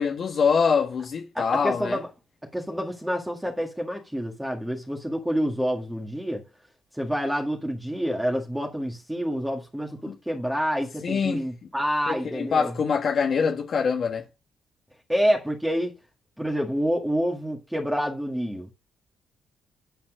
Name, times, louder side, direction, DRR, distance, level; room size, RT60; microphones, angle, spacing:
voice 1, 0.0-2.0 10.1-10.2 11.0-11.4 12.1-14.2, left 6 dB, 55° left, 1.6 m, -24 dB
voice 2, 1.3-2.1 2.5-6.4 6.9-12.7 15.1-16.0 16.4-18.7, equal, 5° right, 1.9 m, -28 dB
11.5 x 4.3 x 6.4 m
cardioid pair, 90°, 0 cm